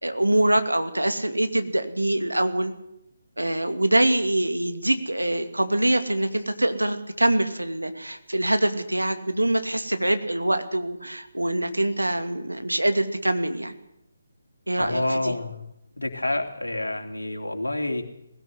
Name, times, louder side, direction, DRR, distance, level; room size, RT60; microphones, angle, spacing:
voice 1, 0.0-2.7 3.4-13.7 14.7-15.3, right 1 dB, 85° right, 8 dB, 2.5 m, -24 dB
voice 2, 14.8-15.6 16.0-18.0, left 2 dB, 80° left, 4 dB, 3.2 m, -28 dB
20.0 x 16.5 x 7.9 m, 0.82 s
figure-of-eight pair, 145°, 0 cm